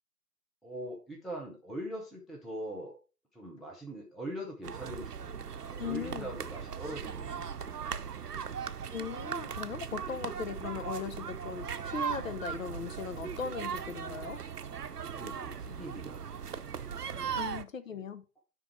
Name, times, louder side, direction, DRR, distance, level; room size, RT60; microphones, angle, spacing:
voice 1, 0.6-3.0 3.3-8.3 10.4-10.5 15.0-16.2 17.0-17.5 17.9-18.1, right 1 dB, ahead, 0.4 m, -43 dB
sound 1, 4.6-17.6, right 7 dB, 75° right, 0.8 m, -38 dB
voice 2, 5.8-6.3 8.9-14.4 17.4-18.2, left 6 dB, 55° left, 1.0 m, -38 dB
10.0 x 3.6 x 4.4 m
figure-of-eight pair, 130°, 47 cm